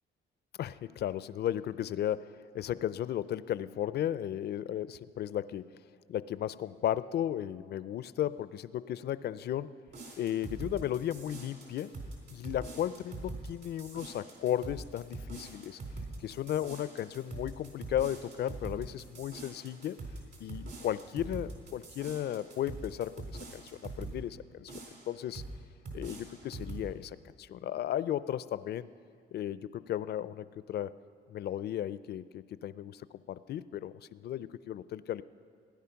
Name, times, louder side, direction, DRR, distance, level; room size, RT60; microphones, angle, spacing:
voice 1, 0.6-2.3 2.5-5.7 6.1-9.7 10.2-11.9 12.3-15.8 16.2-20.0 20.4-24.8 25.1-25.4 25.9-28.9 29.3-30.9 31.3-33.0 33.3-35.2, left 11 dB, 55° left, 16 dB, 0.4 m, -35 dB
sound 1, 9.9-24.2 24.7-25.5 25.8-26.9, right 2 dB, 55° right, 3.9 m, -44 dB
16.5 x 10.5 x 5.8 m, 2.3 s
cardioid pair, 90°, 20 cm